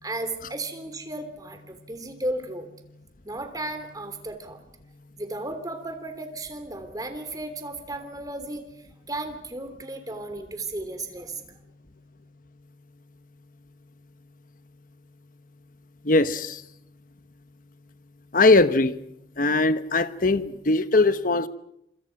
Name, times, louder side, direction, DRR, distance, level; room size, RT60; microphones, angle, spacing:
voice 1, 0.0-2.7 3.2-4.6 5.2-11.4, right 2 dB, 20° right, 8 dB, 3.3 m, -34 dB
voice 2, 16.0-16.6 18.3-19.0 19.4-21.5, left 2 dB, 50° left, 12 dB, 1.2 m, -20 dB
27.5 x 26.0 x 6.0 m, 0.79 s
head